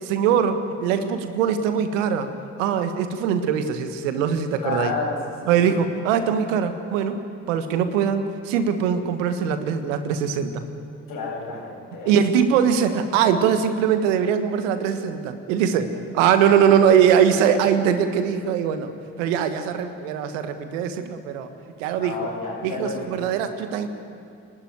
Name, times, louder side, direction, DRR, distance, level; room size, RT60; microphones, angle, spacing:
voice 1, 0.0-2.3 2.6-4.9 5.5-7.2 7.5-10.6 12.0-18.9 19.2-21.5 21.8-22.3 22.6-23.9, right 8 dB, 80° right, 9 dB, 1.5 m, -21 dB
voice 2, 4.6-5.2 5.4-5.7 11.1-12.1 21.8-23.3, left 3 dB, 60° left, -2 dB, 7.9 m, -31 dB
28.0 x 12.5 x 9.5 m, 2.5 s
hypercardioid pair, 50°, 37 cm